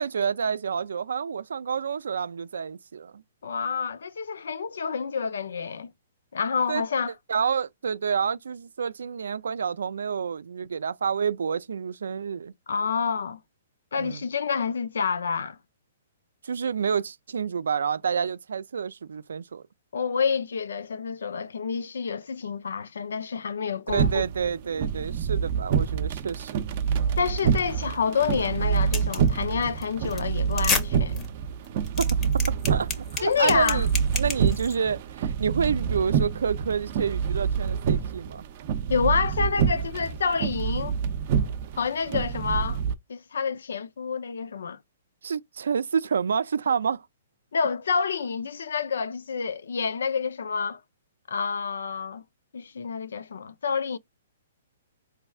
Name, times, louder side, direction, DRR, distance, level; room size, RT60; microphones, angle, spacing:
voice 1, 0.0-3.2 6.7-6.8 7.3-12.5 14.0-14.2 16.4-19.6 23.9-26.6 32.0-33.9 34.1-38.4 45.2-47.0, right 6 dB, 85° right, 0.4 m, -28 dB
voice 2, 3.4-5.9 6.3-7.1 12.7-13.4 13.9-15.6 19.9-24.1 27.2-31.3 33.2-33.8 38.9-41.0 41.8-42.8 43.1-44.8 47.5-50.8 51.3-52.2 52.5-54.0, left 6 dB, 85° left, 0.6 m, -28 dB
sound 1, 23.9-42.9, right 7 dB, 40° right, 0.6 m, -27 dB
sound 2, 28.9-29.3 29.6-29.8 30.1-30.2 30.5-30.8 31.2-31.3 31.6-34.7, left 4 dB, 20° left, 0.9 m, -29 dB
4.3 x 3.3 x 2.3 m
hypercardioid pair, 160°, 0 cm